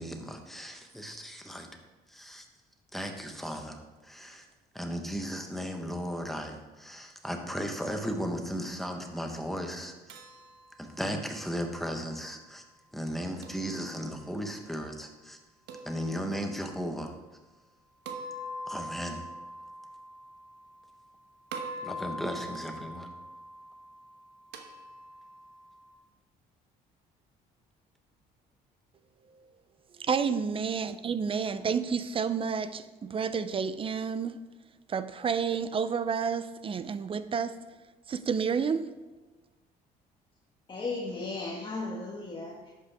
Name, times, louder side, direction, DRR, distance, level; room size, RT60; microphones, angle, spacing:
voice 1, 0.0-1.7 2.1-2.4 2.9-3.8 4.0-4.4 4.7-9.9 10.8-12.6 12.9-15.4 15.8-17.1 18.7-19.2 21.8-23.1, equal, ahead, 1.3 m, -36 dB
sound 1, 10.1-12.2 13.4-14.4 15.7-16.9 18.1-21.1 21.5-25.9, equal, 85° right, 1.2 m, -44 dB
voice 2, 30.0-34.5 34.9-37.6 38.1-38.9, right 6 dB, 30° right, 0.6 m, -30 dB
voice 3, 40.7-42.7, left 3 dB, 30° left, 1.5 m, -36 dB
11.0 x 8.3 x 3.6 m
cardioid pair, 110°, 17 cm